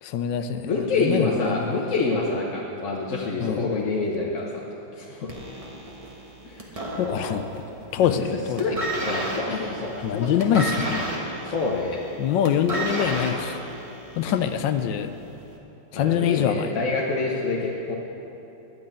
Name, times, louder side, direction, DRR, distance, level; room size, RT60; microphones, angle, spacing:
voice 1, 0.0-0.7 1.0-1.7 3.4-3.7 7.0-7.4 7.9-8.6 10.0-11.0 12.2-13.6 14.2-15.1 15.9-16.7, left 9 dB, 75° left, 9 dB, 1.2 m, -24 dB
voice 2, 0.6-4.6 4.9-5.3 6.4-6.7 7.0-7.3 8.0-8.3 8.6-10.4 11.0-11.2 11.4-12.0 15.9-18.0, left 3 dB, 50° left, -4 dB, 1.1 m, -27 dB
sound 1, 5.3-7.6 7.9-8.3 8.6-14.5 15.4-15.5, right 1 dB, 20° right, 1.1 m, -32 dB
12.5 x 6.1 x 8.7 m, 2.9 s
omnidirectional pair, 2.2 m